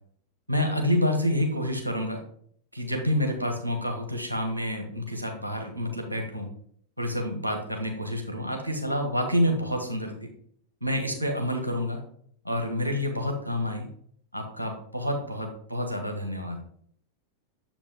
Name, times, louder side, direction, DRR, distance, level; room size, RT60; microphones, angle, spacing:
voice 1, 0.5-2.2 2.7-6.5 7.0-10.3 10.8-12.0 12.4-13.9 14.3-16.6, left 1 dB, 85° right, 5 dB, 1.3 m, -28 dB
7.2 x 5.0 x 3.5 m, 0.63 s
figure-of-eight pair, 90°, 0 cm